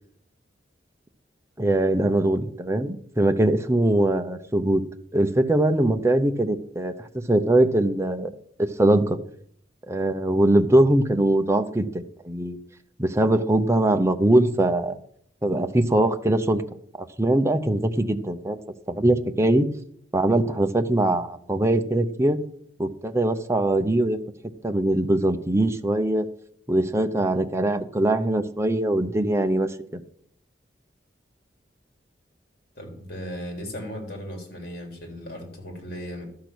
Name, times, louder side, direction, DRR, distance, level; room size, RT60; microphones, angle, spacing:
voice 1, 1.6-4.8 5.1-6.9 7.3-8.3 8.8-9.2 9.9-12.6 13.0-15.0 15.4-16.6 17.0-18.6 18.9-19.7 20.1-22.4 22.8-24.2 24.6-26.3 26.7-30.0, right 1 dB, 15° right, 7 dB, 0.7 m, -22 dB
voice 2, 32.8-36.2, equal, 55° left, 3 dB, 3.5 m, -36 dB
12.5 x 6.7 x 6.1 m, 0.65 s
head